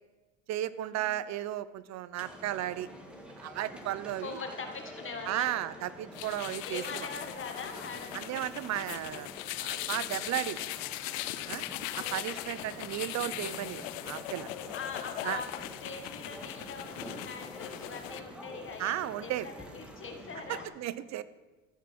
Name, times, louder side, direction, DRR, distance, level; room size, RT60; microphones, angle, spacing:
voice 1, 0.5-2.9 3.4-4.4 5.3-7.1 8.1-9.3 9.6-10.7 11.5-11.6 12.1-14.8 15.2-15.4 18.8-19.5 20.5-21.2, right 13 dB, 45° right, 16 dB, 0.7 m, -34 dB
sound 1, 2.2-20.7, equal, 5° right, 2.0 m, -48 dB
voice 2, 4.2-5.6 6.6-8.3 12.0-12.7 14.7-20.7, left 5 dB, 30° left, 4 dB, 1.8 m, -42 dB
sound 2, 6.1-18.2, left 15 dB, 80° left, 0.7 m, -40 dB
14.0 x 6.0 x 6.0 m, 1.2 s
supercardioid pair, 90°, 38 cm